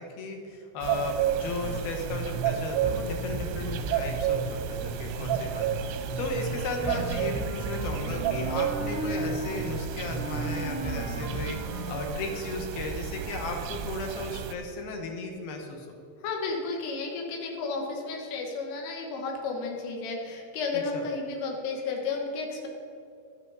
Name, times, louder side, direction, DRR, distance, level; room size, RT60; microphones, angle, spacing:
voice 1, 0.0-15.9 20.7-21.0, left 3 dB, 65° left, 3 dB, 2.6 m, -35 dB
sound 1, 0.8-14.5, right 9 dB, 80° right, 2.7 m, -32 dB
sound 2, 1.6-2.6 2.8-6.6 6.8-10.6 10.8-11.6, right 2 dB, 5° left, 0.7 m, -36 dB
Wind instrument woodwind instrument, 6.3-9.5 10.2-12.9, right 2 dB, 45° right, 1.3 m, -37 dB
voice 2, 16.2-22.7, left 4 dB, 80° left, 1 dB, 3.9 m, -32 dB
13.5 x 12.0 x 4.0 m, 2.6 s
omnidirectional pair, 5.7 m